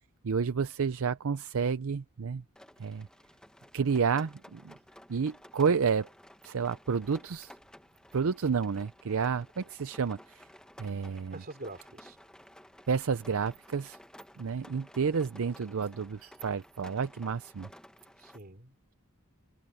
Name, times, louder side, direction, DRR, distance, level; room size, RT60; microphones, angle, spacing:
voice 1, 0.2-2.4 2.8-3.1 3.7-4.7 5.1-6.1 6.4-7.5 8.1-10.5 10.8-11.4 12.9-14.0 14.4-17.7, right 5 dB, 70° right, 0.5 m, -30 dB
Rain, 2.6-18.4, equal, 5° left, 1.2 m, -54 dB
voice 2, 11.3-12.2 18.2-18.9, right 2 dB, 45° right, 3.6 m, -45 dB
head